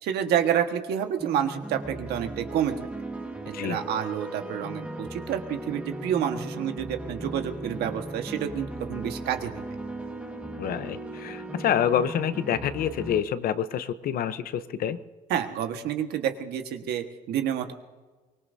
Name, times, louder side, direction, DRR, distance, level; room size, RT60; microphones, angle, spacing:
voice 1, 0.0-2.8 3.6-9.5 15.3-17.7, right 9 dB, 75° right, 6 dB, 1.5 m, -29 dB
sound 1, 1.2-13.2, right 2 dB, 5° right, 1.6 m, -37 dB
voice 2, 10.6-15.0, left 9 dB, 60° left, 12 dB, 0.9 m, -27 dB
23.5 x 20.0 x 2.8 m, 1.3 s
cardioid pair, 110°, 17 cm